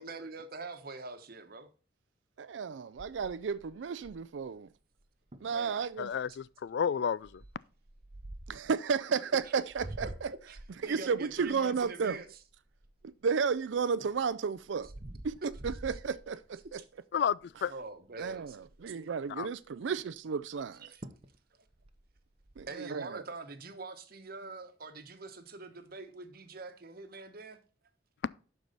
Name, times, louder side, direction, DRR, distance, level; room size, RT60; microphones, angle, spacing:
voice 1, 0.0-1.7 4.5-4.6 5.4-5.8 9.4-9.5 10.0-10.1 10.5-12.4 14.8-14.9 15.9-16.0 16.8-16.9 17.7-18.6 18.9-19.0 20.8-21.0 22.7-27.6, right 3 dB, 50° right, 1.1 m, -44 dB
voice 2, 2.4-4.7 5.4-6.1 8.5-10.3 10.8-12.2 13.2-14.9 15.2-15.4 15.6-16.8 18.2-20.8 22.6-23.2, right 5 dB, 70° right, 0.4 m, -33 dB
sound 1, 3.0-4.4 5.0-5.1 5.3-5.6 6.1-6.4 7.2-8.7 9.4-13.3 13.8-16.8 17.3-17.5 17.8-17.9 18.2-18.9 20.6-20.7 21.0-21.4 21.7-22.6, right 1 dB, 35° right, 0.8 m, -47 dB
voice 3, 6.0-7.4 17.1-17.7 19.3-19.5, left 7 dB, 60° left, 0.3 m, -31 dB
12.0 x 4.7 x 3.9 m
head